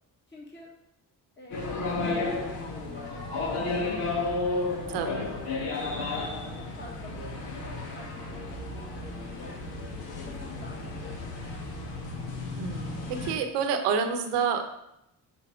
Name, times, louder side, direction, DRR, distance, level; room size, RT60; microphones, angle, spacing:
voice 1, 0.3-0.7 1.4-4.4 4.9-9.7 10.2-11.3, left 2 dB, 25° left, -2 dB, 1.4 m, -48 dB
sound 1, 1.5-13.3, left 3 dB, 90° left, 1.3 m, -33 dB
voice 2, 4.9-5.2 12.6-14.6, right 6 dB, 90° right, 7 dB, 0.9 m, -28 dB
7.9 x 4.1 x 5.0 m, 0.83 s
supercardioid pair, 60°, 40 cm